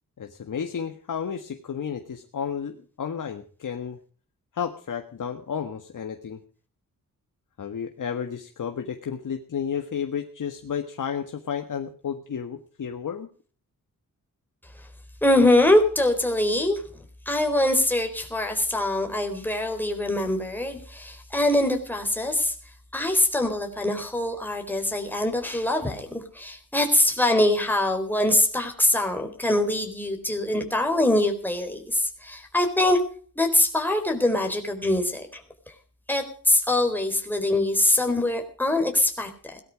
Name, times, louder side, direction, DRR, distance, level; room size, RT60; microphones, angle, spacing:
voice 1, 0.2-4.0 4.5-6.4 7.6-13.3, left 7 dB, 65° left, 5 dB, 1.6 m, -32 dB
voice 2, 15.2-16.8 17.3-22.5 22.9-33.0 33.4-35.4 36.1-39.6, left 1 dB, 5° left, 3 dB, 4.1 m, -23 dB
18.5 x 12.5 x 4.8 m, 0.42 s
wide cardioid pair, 125°, 33 cm